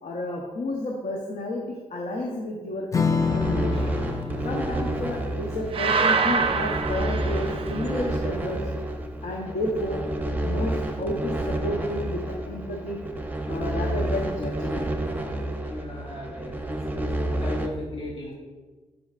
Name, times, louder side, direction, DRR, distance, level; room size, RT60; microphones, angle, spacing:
voice 1, 0.0-3.7 4.4-8.6 9.2-10.0 10.4-13.0 13.5-14.9, left 1 dB, 75° left, -1 dB, 0.9 m, -31 dB
Strum, 2.9-9.8, left 5 dB, 25° left, 0.3 m, -31 dB
sound 1, 3.2-17.7, right 1 dB, 15° right, 0.7 m, -30 dB
sound 2, 5.7-8.0, right 5 dB, 45° right, 0.4 m, -25 dB
voice 2, 15.6-17.1 17.4-18.3, left 1 dB, 45° left, -2 dB, 1.4 m, -36 dB
10.5 x 5.1 x 2.4 m, 1.3 s
wide cardioid pair, 125°, 13 cm